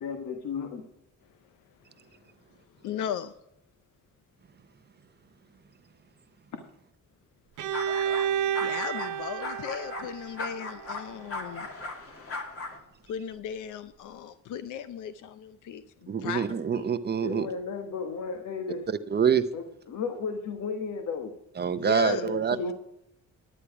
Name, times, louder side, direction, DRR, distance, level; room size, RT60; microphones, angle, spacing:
voice 1, 0.0-0.8 17.2-18.9 19.5-21.3 22.0-22.7, left 4 dB, 70° left, 5 dB, 1.3 m, -34 dB
voice 2, 2.8-3.3 8.3-11.7 13.1-16.5 16.7-16.8 21.7-22.2, left 8 dB, 90° left, 12 dB, 0.6 m, -36 dB
Bowed string instrument, 7.6-11.4, right 9 dB, 80° right, 0.9 m, -31 dB
sound 1, 7.7-8.3 8.5-9.1 9.4-12.8, left 3 dB, 50° left, 2.3 m, -38 dB
voice 3, 16.1-17.5 18.9-19.4 21.6-22.7, right 7 dB, 35° right, 12 dB, 0.7 m, -26 dB
10.0 x 10.0 x 4.8 m, 0.79 s
cardioid pair, 110°, 30 cm